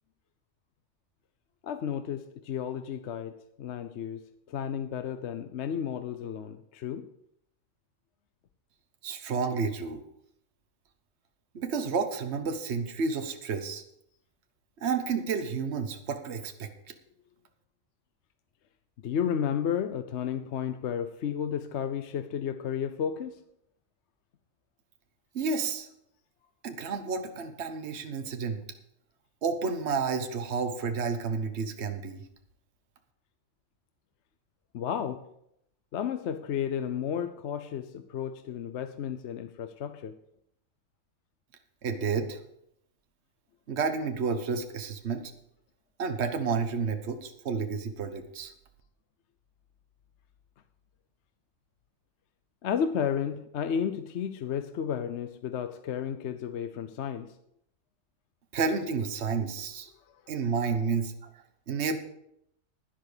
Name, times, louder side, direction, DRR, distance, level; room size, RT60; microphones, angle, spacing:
voice 1, 1.6-7.1 19.0-23.4 34.7-35.2 35.9-40.2 52.6-57.3 60.1-60.2, left 8 dB, 65° left, 10 dB, 0.9 m, -32 dB
voice 2, 9.0-10.0 11.5-13.8 14.8-16.7 25.3-25.9 26.6-28.6 29.4-32.2 41.8-42.4 43.7-45.3 46.0-48.5 58.5-59.9 60.3-61.1 61.7-62.0, right 5 dB, 55° right, 7 dB, 1.3 m, -30 dB
11.5 x 10.5 x 5.0 m, 0.75 s
omnidirectional pair, 1.4 m